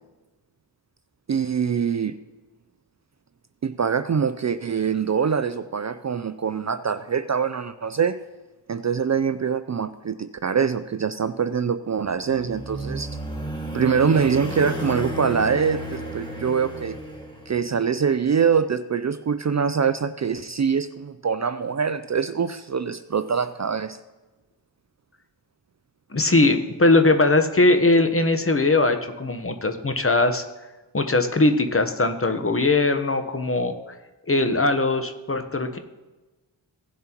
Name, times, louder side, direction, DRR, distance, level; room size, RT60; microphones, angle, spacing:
voice 1, 1.3-2.2 3.6-8.2 8.7-13.1 13.7-17.0 17.5-24.0, right 6 dB, 40° right, 12 dB, 0.4 m, -24 dB
sound 1, 12.0-17.8, equal, 10° left, 1.9 m, -33 dB
voice 2, 26.1-30.4 30.9-33.7 34.3-35.8, left 2 dB, 30° left, 7 dB, 1.0 m, -20 dB
17.0 x 7.4 x 3.0 m, 1.1 s
cardioid pair, 45°, 45 cm